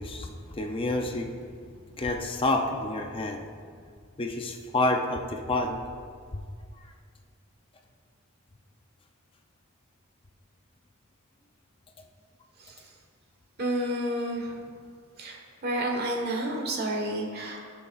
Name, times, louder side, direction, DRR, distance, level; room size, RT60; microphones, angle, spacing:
voice 1, 0.0-1.3 2.0-3.4 4.2-5.8 16.3-16.4, left 2 dB, 25° left, 3 dB, 0.5 m, -29 dB
voice 2, 13.6-14.4 15.2-15.3 15.6-17.6, right 1 dB, 50° right, 1 dB, 1.4 m, -29 dB
19.0 x 6.6 x 2.4 m, 2.1 s
head